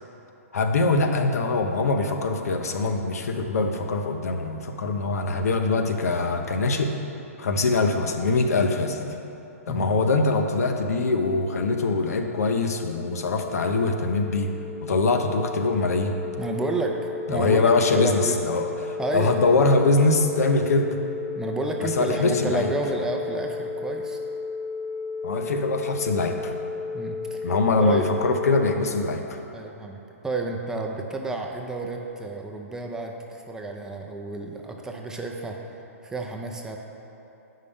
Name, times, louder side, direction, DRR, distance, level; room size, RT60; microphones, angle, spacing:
voice 1, 0.5-6.9 7.4-9.1 9.7-14.5 14.8-16.1 17.3-21.0 21.8-22.7 25.2-26.5 27.4-29.4, left 3 dB, 75° left, 5 dB, 0.7 m, -23 dB
sound 1, 11.8-28.7, left 4 dB, 25° left, 0.8 m, -34 dB
voice 2, 16.4-17.0 17.3-18.4 19.0-19.4 21.4-24.2 26.9-27.5 27.8-28.1 29.5-35.6 36.0-36.8, right 2 dB, 5° right, 1 dB, 0.4 m, -30 dB
8.2 x 5.5 x 3.5 m, 2.9 s
hypercardioid pair, 135°, 8 cm